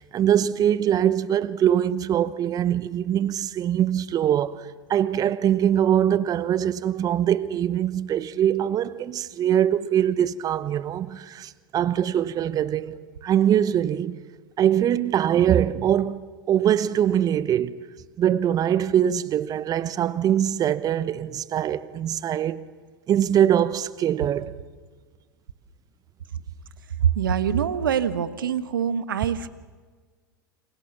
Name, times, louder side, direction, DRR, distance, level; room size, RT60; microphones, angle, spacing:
voice 1, 0.0-14.2 14.6-17.8 18.2-22.7 23.1-24.5, right 10 dB, 35° right, 1.0 m, -23 dB
voice 2, 27.0-29.5, right 8 dB, 75° right, 1.5 m, -24 dB
29.5 x 27.0 x 7.3 m
hypercardioid pair, 90°, 11 cm